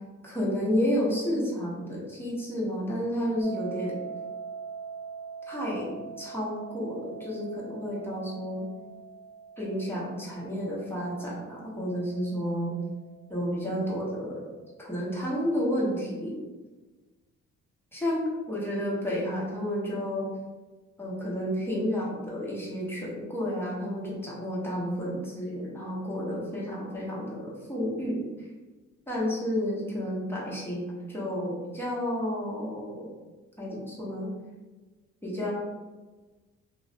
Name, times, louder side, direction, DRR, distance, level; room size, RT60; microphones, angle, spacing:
voice 1, 0.2-4.0 5.4-8.6 9.6-12.8 13.3-14.5 14.8-16.4 17.9-20.3 21.0-28.5 29.1-33.1 33.6-34.3 35.2-35.5, equal, 5° left, -6 dB, 0.9 m, -31 dB
sound 1, 3.4-14.3, right 6 dB, 15° right, 0.4 m, -44 dB
2.4 x 2.0 x 2.7 m, 1.2 s
cardioid pair, 90°, 30 cm